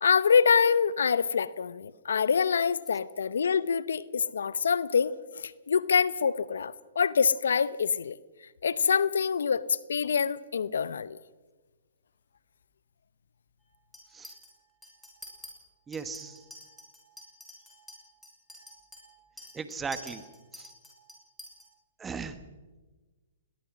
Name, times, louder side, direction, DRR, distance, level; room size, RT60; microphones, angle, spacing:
voice 1, 0.0-8.2 8.6-11.2, left 6 dB, 75° left, 0.8 m, -26 dB
Chink clink, 13.9-14.5 14.8-15.5 15.9-21.6, left 1 dB, 5° left, 6.4 m, -48 dB
voice 2, 15.9-16.4 19.5-20.2 20.5-20.7 22.0-22.4, right 5 dB, 15° right, 1.6 m, -37 dB
21.5 x 19.5 x 6.3 m
hypercardioid pair, 130°, 0 cm